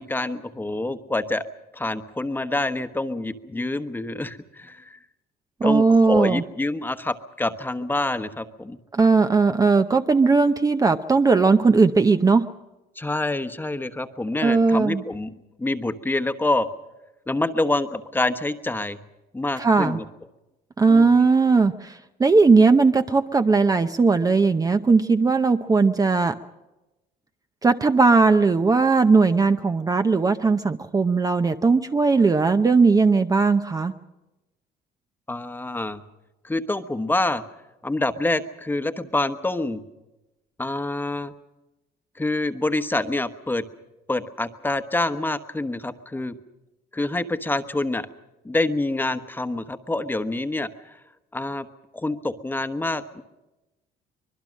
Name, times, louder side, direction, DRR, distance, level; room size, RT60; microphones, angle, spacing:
voice 1, 0.0-1.4 1.7-5.0 5.6-8.8 13.0-15.3 15.6-16.7 17.3-19.0 19.3-20.0 20.9-21.3 35.3-36.0 36.4-37.4 37.8-39.8 40.6-41.3 42.2-43.6 44.1-46.4 46.9-48.1 48.4-51.0 51.3-51.7 51.9-53.2, left 2 dB, 10° left, 9 dB, 1.2 m, -26 dB
voice 2, 5.6-6.4 8.9-12.5 14.4-15.0 19.6-20.0 20.8-26.4 27.6-33.9, right 4 dB, 20° right, 8 dB, 0.7 m, -18 dB
24.5 x 21.5 x 6.4 m, 1.0 s
cardioid pair, 110°, 17 cm